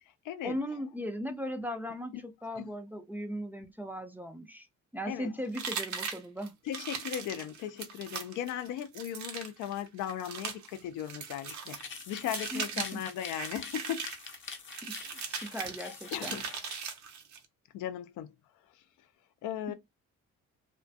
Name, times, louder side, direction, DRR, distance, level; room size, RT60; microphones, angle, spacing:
voice 1, 0.4-4.7 4.9-6.5 12.5-13.0 14.8-16.4 19.7-19.8, equal, 5° right, 0.3 m, -38 dB
sound 1, 5.5-17.5, right 6 dB, 70° right, 0.6 m, -40 dB
voice 2, 6.7-11.8 12.1-14.1 15.1-15.2 16.1-16.6 17.7-18.3 19.4-19.7, left 10 dB, 85° left, 0.4 m, -37 dB
sound 2, 11.3-17.0, left 5 dB, 40° left, 0.6 m, -46 dB
2.4 x 2.2 x 2.5 m
cardioid pair, 90°, 30 cm